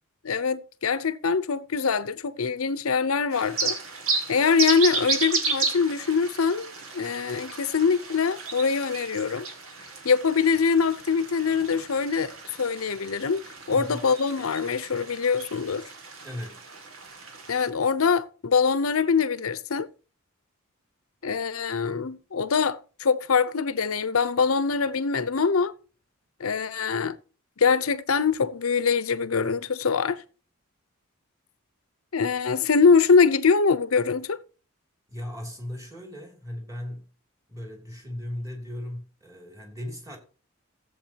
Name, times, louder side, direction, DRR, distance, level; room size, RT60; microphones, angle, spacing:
voice 1, 0.2-3.8 4.3-6.7 6.9-9.5 10.0-12.3 12.6-13.4 13.7-15.9 17.5-19.9 21.2-25.7 26.4-27.2 27.6-30.2 32.1-34.4, left 5 dB, 90° left, 0.7 m, -23 dB
sound 1, 3.3-17.7, right 4 dB, 80° right, 2.3 m, -33 dB
voice 2, 13.7-14.1 16.2-16.7 35.1-37.1 37.5-40.2, left 1 dB, 15° right, 2.9 m, -37 dB
15.0 x 7.9 x 2.9 m
head